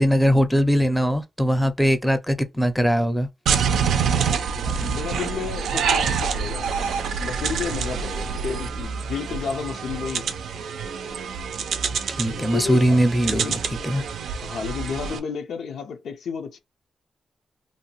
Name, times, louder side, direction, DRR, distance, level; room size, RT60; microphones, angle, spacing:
voice 1, 0.0-3.3 12.1-13.6 13.8-14.0, equal, ahead, 0.5 m, -20 dB
sound 1, 3.5-15.2, right 6 dB, 90° right, 0.4 m, -26 dB
voice 2, 4.6-6.7 7.2-10.4 12.2-13.0 13.3-13.6 14.4-16.6, left 6 dB, 85° left, 0.5 m, -32 dB
2.7 x 2.2 x 2.9 m
cardioid pair, 80°, 0 cm